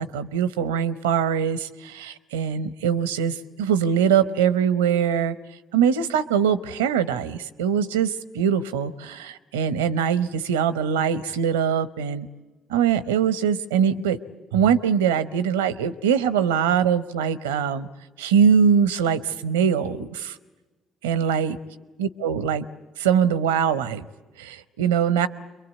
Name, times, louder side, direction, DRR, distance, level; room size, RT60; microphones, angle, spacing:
voice 1, 0.0-5.4 5.7-12.3 12.7-14.2 14.5-17.9 18.2-20.4 21.0-21.6 22.0-22.6 23.0-24.1 24.4-25.3, right 8 dB, 85° right, 15 dB, 0.8 m, -22 dB
27.0 x 22.5 x 8.3 m, 1.2 s
hypercardioid pair, 50°, 0 cm